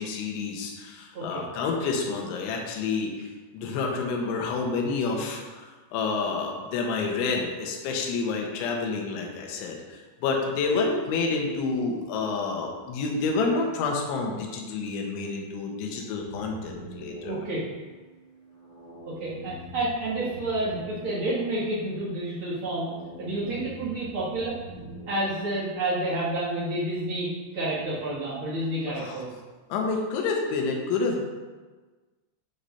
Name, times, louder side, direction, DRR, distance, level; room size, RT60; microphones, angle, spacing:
voice 1, 0.0-17.4 28.9-29.2 29.7-31.2, left 4 dB, 70° left, 1 dB, 3.4 m, -29 dB
sound 1, 16.1-26.1, right 1 dB, 40° left, 1.7 m, -44 dB
voice 2, 17.2-17.6 19.0-22.9 23.2-24.6 25.1-27.3 27.5-29.3, right 1 dB, 70° right, -9 dB, 1.2 m, -29 dB
11.5 x 4.7 x 5.7 m, 1.3 s
omnidirectional pair, 5.8 m